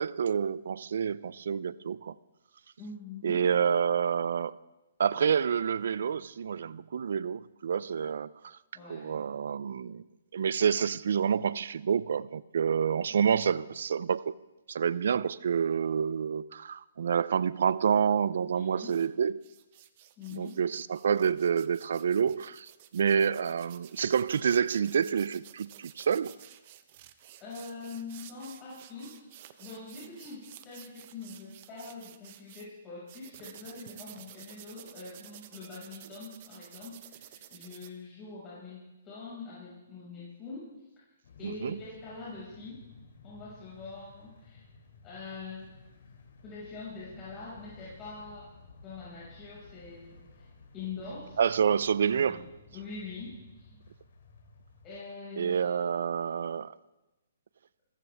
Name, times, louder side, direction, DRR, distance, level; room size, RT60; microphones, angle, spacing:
voice 1, 0.0-2.1 3.2-4.6 5.0-8.6 8.9-10.0 10.3-14.3 14.7-19.4 20.3-26.4 41.4-41.8 51.4-52.4 55.4-56.7, right 7 dB, 70° right, 0.5 m, -28 dB
voice 2, 2.8-3.5 8.7-9.2 18.6-19.0 20.2-20.6 27.4-40.8 41.4-42.9 43.2-44.6 45.0-45.7 46.4-48.5 48.8-50.5 50.7-51.4 52.2-52.4 52.7-53.8 54.8-55.7, left 4 dB, 25° left, 5.9 m, -44 dB
sound 1, 18.8-19.1 19.4-32.7 33.1-37.9, right 13 dB, 45° right, 1.0 m, -52 dB
Thunder Storm Fantasy Atmosphere, 41.2-55.0, left 4 dB, 65° left, 3.0 m, -55 dB
25.5 x 15.0 x 3.5 m
hypercardioid pair, 140°, 0 cm